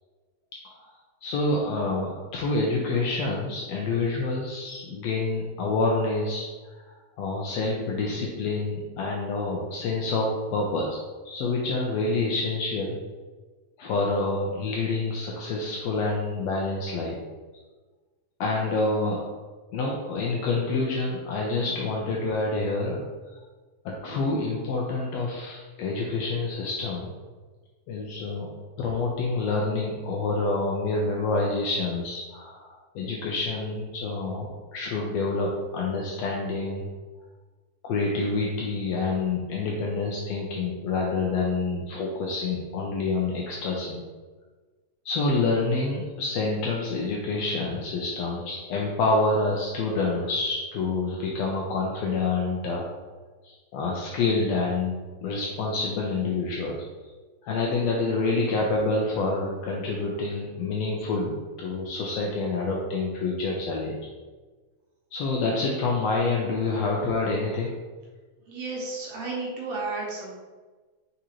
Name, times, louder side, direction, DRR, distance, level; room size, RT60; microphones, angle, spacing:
voice 1, 1.2-6.5 6.7-11.0 11.2-13.0 13.8-17.2 18.4-19.3 19.7-23.0 23.8-27.1 27.9-28.5 28.8-36.9 37.8-44.0 45.0-52.8 53.4-56.8 57.4-64.0 65.1-67.7, left 3 dB, 80° left, -2 dB, 1.5 m, -27 dB
voice 2, 68.4-70.3, right 3 dB, 75° right, -3 dB, 1.9 m, -33 dB
4.7 x 3.9 x 2.9 m, 1.3 s
omnidirectional pair, 3.4 m